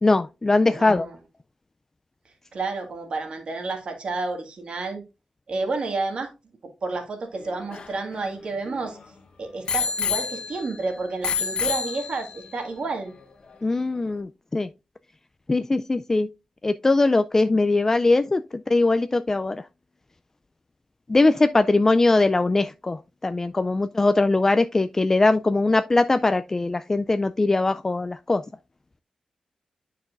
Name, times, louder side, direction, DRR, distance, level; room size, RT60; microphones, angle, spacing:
voice 1, 0.0-1.1 13.6-14.7 15.5-16.3 16.6-19.6 21.1-28.4, left 2 dB, 20° left, 0.3 m, -21 dB
voice 2, 0.6-1.1 2.5-5.0 5.5-6.3 6.8-9.0 9.4-13.1, right 3 dB, 55° right, 1.8 m, -30 dB
Bicycle bell, 7.4-9.0 9.7-10.8 11.2-12.5 13.2-13.3, left 6 dB, 55° left, 1.0 m, -29 dB
9.5 x 5.8 x 2.5 m
wide cardioid pair, 135°, 2 cm